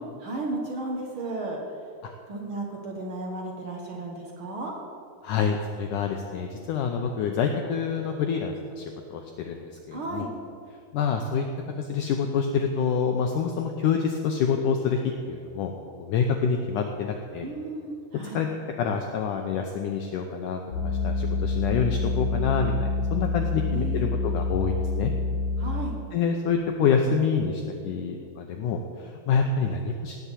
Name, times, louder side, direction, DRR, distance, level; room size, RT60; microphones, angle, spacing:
voice 1, 0.2-1.6 2.3-4.7 9.9-10.3 17.4-18.4 23.7-24.1 25.6-26.0, right 2 dB, 60° right, -1 dB, 1.3 m, -34 dB
voice 2, 5.2-10.3 10.9-11.5 11.8-15.7 16.0-17.5 18.3-18.5 18.8-25.1 26.1-30.2, left 6 dB, 80° left, 3 dB, 1.8 m, -27 dB
sound 1, 20.7-26.0, left 3 dB, 50° left, 1.9 m, -27 dB
17.5 x 6.1 x 8.3 m, 2.3 s
omnidirectional pair, 4.6 m